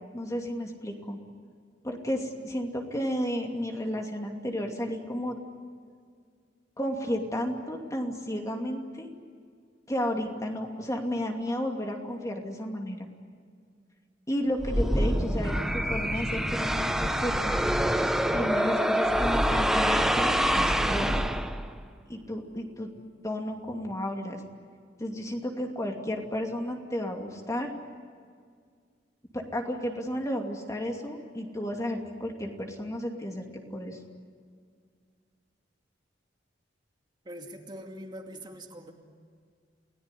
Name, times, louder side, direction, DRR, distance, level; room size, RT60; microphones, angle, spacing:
voice 1, 0.1-1.2 1.8-5.4 6.8-9.1 9.9-13.1 14.3-17.6 18.3-21.2 22.1-22.9 23.2-24.4 25.0-27.7 29.3-34.0, equal, 20° left, 2 dB, 2.6 m, -32 dB
sound 1, 14.6-21.8, equal, 5° right, 1.0 m, -26 dB
voice 2, 37.2-38.9, equal, 25° right, 2 dB, 2.4 m, -43 dB
29.0 x 18.5 x 9.9 m, 2.1 s
head